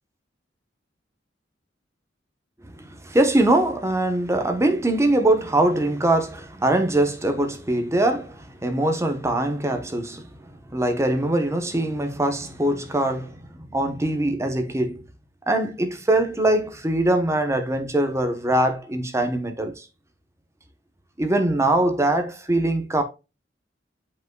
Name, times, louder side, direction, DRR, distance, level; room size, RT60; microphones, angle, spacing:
voice 1, 2.6-10.4 10.7-15.0 15.5-19.8 21.2-23.0, right 1 dB, 15° right, 1.0 m, -22 dB
8.6 x 5.4 x 2.3 m
head